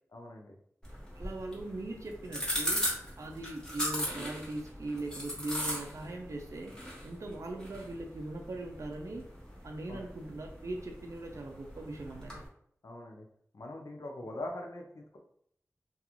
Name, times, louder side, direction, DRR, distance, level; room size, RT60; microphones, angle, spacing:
voice 1, 0.1-0.6 9.9-10.1 12.8-13.3 13.5-15.2, left 1 dB, 75° left, 1 dB, 0.5 m, -42 dB
sound 1, 0.8-12.5, equal, 15° left, 1.1 m, -39 dB
voice 2, 1.1-6.7 7.0-9.2 9.6-12.4 14.2-14.3, right 2 dB, 60° right, 2 dB, 0.4 m, -40 dB
2.4 x 2.3 x 2.9 m, 0.66 s
wide cardioid pair, 50°, 6 cm